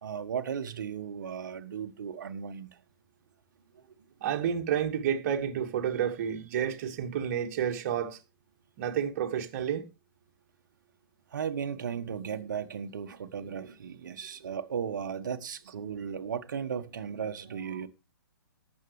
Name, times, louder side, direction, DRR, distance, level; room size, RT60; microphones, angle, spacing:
voice 1, 0.0-2.8 3.7-3.8 11.3-17.9, right 7 dB, 55° right, 1.4 m, -36 dB
voice 2, 4.2-8.2 8.8-9.9 15.6-15.7, right 9 dB, 35° right, 2.0 m, -30 dB
19.0 x 7.8 x 3.3 m
figure-of-eight pair, 125°, 12 cm